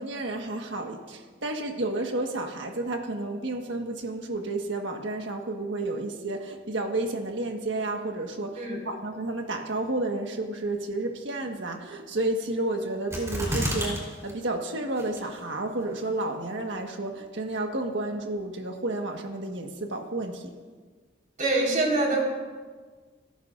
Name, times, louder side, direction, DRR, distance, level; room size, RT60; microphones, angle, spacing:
voice 1, 0.0-20.5, right 2 dB, 70° right, 3 dB, 1.6 m, -31 dB
sound 1, 13.1-14.0 14.3-14.4 15.0-15.4 16.0-16.1, equal, 15° right, 4.0 m, -29 dB
voice 2, 21.4-22.2, right 2 dB, 45° right, -2 dB, 4.6 m, -24 dB
26.5 x 14.0 x 2.6 m, 1.4 s
head